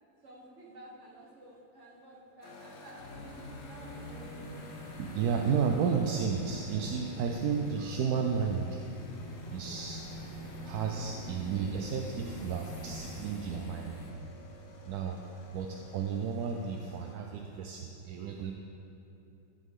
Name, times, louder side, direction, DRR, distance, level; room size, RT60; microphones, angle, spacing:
voice 1, 0.2-3.3 3.6-4.5 9.6-9.9, right 1 dB, 40° right, -3 dB, 1.8 m, -53 dB
sound 1, 2.4-17.2, equal, 80° left, 1.8 m, -50 dB
sound 2, 3.0-14.1, left 1 dB, 50° left, 1.4 m, -45 dB
voice 2, 5.0-8.8 9.5-10.0 10.6-14.0 14.9-15.2 15.5-18.5, right 6 dB, 70° right, 3 dB, 1.0 m, -32 dB
14.0 x 7.2 x 3.7 m, 3.0 s
omnidirectional pair, 2.0 m